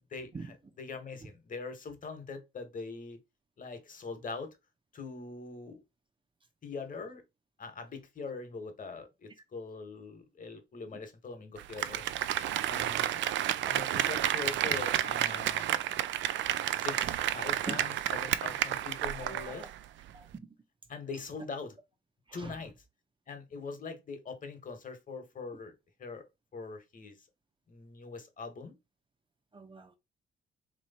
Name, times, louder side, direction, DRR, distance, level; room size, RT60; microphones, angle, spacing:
voice 1, 0.8-3.2 3.6-4.5 4.9-5.8 6.6-7.2 7.6-12.0 12.6-13.2 13.6-15.9 16.7-19.7 20.9-21.8 22.3-22.7 23.3-25.7 26.0-26.2 26.5-27.2 27.7-28.8, left 4 dB, 40° left, 1.3 m, -42 dB
Applause, 11.6-19.8 20.1-20.2, right 12 dB, 70° right, 0.4 m, -31 dB
voice 2, 19.1-19.7 20.1-20.5 22.3-22.7 29.5-30.0, right 4 dB, 25° right, 0.7 m, -44 dB
3.1 x 3.1 x 4.1 m
cardioid pair, 90°, 20 cm